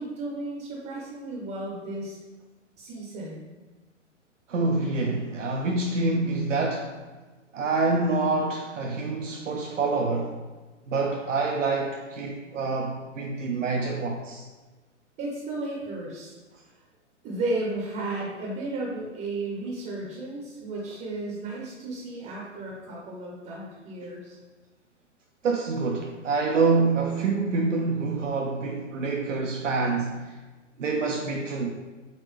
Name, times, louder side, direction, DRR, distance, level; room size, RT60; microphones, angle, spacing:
voice 1, 0.0-2.2 2.8-3.5 15.2-16.3 16.7-16.8 17.2-24.4, right 2 dB, 20° right, 0.6 m, -34 dB
voice 2, 4.5-7.0 7.5-10.4 10.9-14.5 25.4-30.4 30.8-31.7, right 3 dB, 85° right, 0.5 m, -26 dB
3.9 x 3.6 x 3.1 m
figure-of-eight pair, 120°, 37 cm